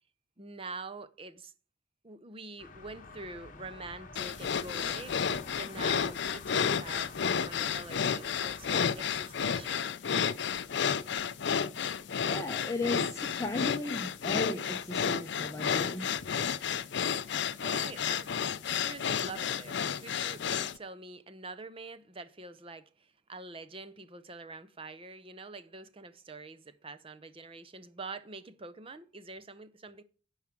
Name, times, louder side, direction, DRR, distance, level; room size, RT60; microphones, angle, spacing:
voice 1, 0.4-1.5 2.0-5.2 5.5-9.9 17.6-18.3 18.6-30.0, right 3 dB, 25° right, 0.7 m, -45 dB
sound 1, 2.6-9.8, left 3 dB, 40° left, 1.2 m, -50 dB
sound 2, 4.2-20.8, left 7 dB, 55° left, 0.5 m, -31 dB
voice 2, 11.9-16.1, left 2 dB, 15° left, 0.8 m, -36 dB
11.0 x 4.9 x 6.0 m
head